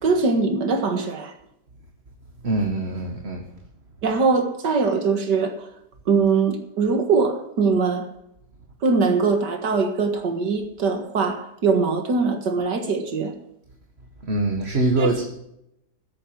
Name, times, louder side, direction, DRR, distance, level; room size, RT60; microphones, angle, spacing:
voice 1, 0.0-1.3 4.0-5.7 6.1-8.1 8.8-13.3 15.0-15.2, right 4 dB, 85° right, 5 dB, 2.3 m, -22 dB
voice 2, 2.4-3.4 14.2-15.2, right 2 dB, 40° right, 3 dB, 1.8 m, -23 dB
15.5 x 8.3 x 7.6 m, 0.80 s
omnidirectional pair, 1.8 m